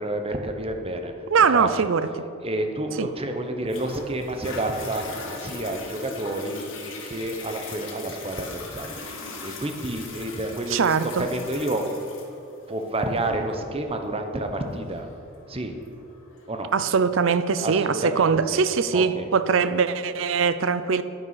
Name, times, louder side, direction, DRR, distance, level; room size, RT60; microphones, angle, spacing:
voice 1, 0.0-1.1 1.5-1.7 2.4-11.9 12.7-15.1 15.5-15.8 16.5-16.7 17.6-18.6 18.9-19.3, right 1 dB, 30° right, 0.9 m, -30 dB
voice 2, 1.3-2.3 3.0-3.1 10.7-11.3 16.7-21.0, right 5 dB, 70° right, 0.5 m, -22 dB
Toilet flush, 3.7-16.7 17.3-17.4, left 4 dB, 70° left, 1.9 m, -40 dB
9.5 x 9.3 x 5.7 m
head